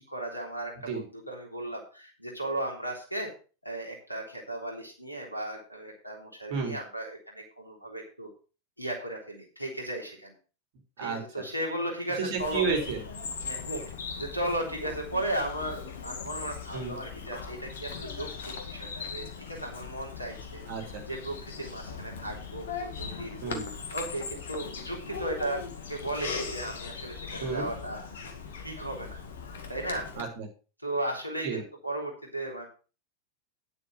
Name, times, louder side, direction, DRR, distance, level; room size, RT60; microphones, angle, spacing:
voice 1, 0.0-3.3 3.6-8.3 8.8-10.4 11.0-12.6 13.4-13.8 14.1-20.6 21.1-25.6 25.9-28.0 28.6-29.2 29.7-30.1 30.8-32.7, right 1 dB, 90° left, 1 dB, 3.4 m, -36 dB
voice 2, 11.0-11.5 12.2-13.0 16.7-16.9 20.7-21.0 23.4-23.7 27.4-27.7 30.2-30.5 31.4-31.6, right 5 dB, 50° right, 3 dB, 3.8 m, -31 dB
Bird vocalization bird call bird song, 12.4-30.2, left 5 dB, 60° left, 2.0 m, -39 dB
10.0 x 8.1 x 5.2 m, 0.36 s
figure-of-eight pair, 90°, 0 cm